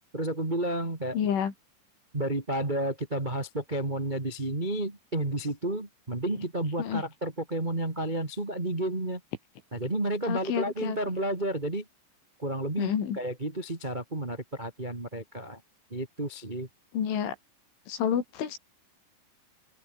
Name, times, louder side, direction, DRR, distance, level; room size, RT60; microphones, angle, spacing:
voice 1, 0.1-1.2 2.1-9.2 9.7-11.8 12.4-15.6 15.9-16.7, right 1 dB, 60° right, 0.4 m, -31 dB
voice 2, 1.1-1.5 6.8-7.0 10.3-11.0 12.8-13.2 16.9-17.4 17.9-18.6, left 8 dB, 75° left, 6.0 m, -29 dB
open air
omnidirectional pair, 5.6 m